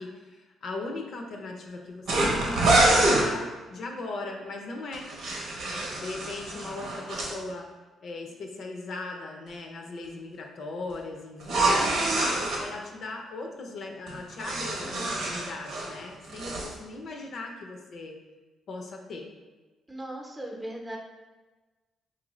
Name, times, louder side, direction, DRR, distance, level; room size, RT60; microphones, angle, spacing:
voice 1, 0.0-5.1 6.0-7.7 8.0-18.2 18.7-19.3, left 2 dB, 60° left, 1 dB, 0.5 m, -38 dB
sound 1, 2.1-3.3 4.9-7.3 11.4-12.6 14.1-15.9 16.2-16.7, right 2 dB, 75° right, 0.9 m, -26 dB
voice 2, 19.9-21.0, right 1 dB, 15° right, 0 dB, 0.7 m, -38 dB
4.3 x 2.5 x 3.1 m, 1.2 s
cardioid pair, 90°, 0 cm